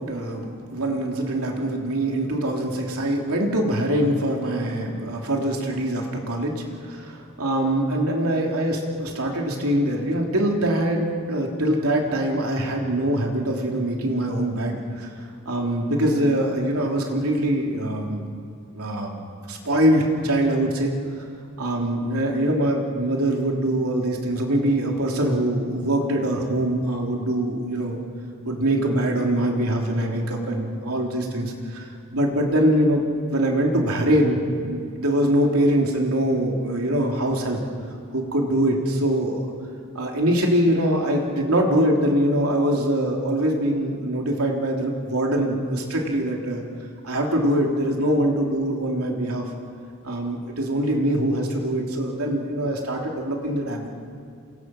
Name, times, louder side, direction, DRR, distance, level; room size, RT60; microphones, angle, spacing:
voice 1, 0.0-15.1 15.4-18.2 18.7-20.9 21.6-28.0 28.4-31.9 32.1-37.6 38.1-39.4 39.9-46.6 47.0-49.4 50.0-53.9, right 1 dB, 90° right, 0 dB, 3.5 m, -23 dB
28.5 x 23.0 x 6.1 m, 2.4 s
head